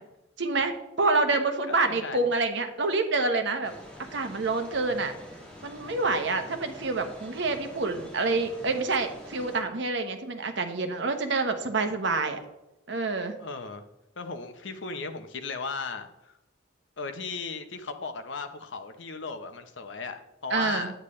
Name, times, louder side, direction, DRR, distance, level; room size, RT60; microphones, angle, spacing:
voice 1, 0.4-3.7 4.1-5.1 5.6-12.4 12.9-13.3 20.5-20.9, right 3 dB, 60° right, 6 dB, 1.1 m, -27 dB
voice 2, 1.7-2.2 6.2-6.4 13.4-13.8 14.2-16.4 17.0-20.9, left 4 dB, 65° left, 7 dB, 0.9 m, -36 dB
sound 1, 3.6-9.6, equal, 5° left, 1.7 m, -46 dB
9.9 x 9.1 x 3.2 m, 0.91 s
head